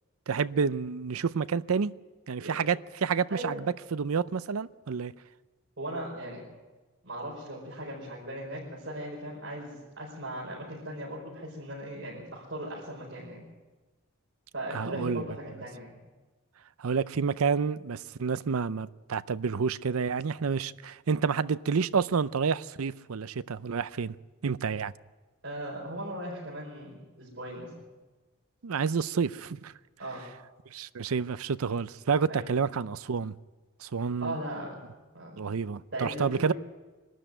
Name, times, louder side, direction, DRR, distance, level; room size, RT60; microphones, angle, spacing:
voice 1, 0.3-1.9 2.3-5.1 14.7-15.2 16.8-24.2 24.4-24.9 28.6-29.7 30.7-33.3 33.8-34.4 35.4-36.5, right 5 dB, 80° right, 0.5 m, -29 dB
voice 2, 3.3-3.6 5.8-6.4 7.0-13.4 14.5-16.0 25.4-27.7 30.0-30.2 32.3-32.5 34.2-34.8 35.1-35.4 35.9-36.5, right 1 dB, 55° right, 5.1 m, -38 dB
24.0 x 13.0 x 9.0 m
head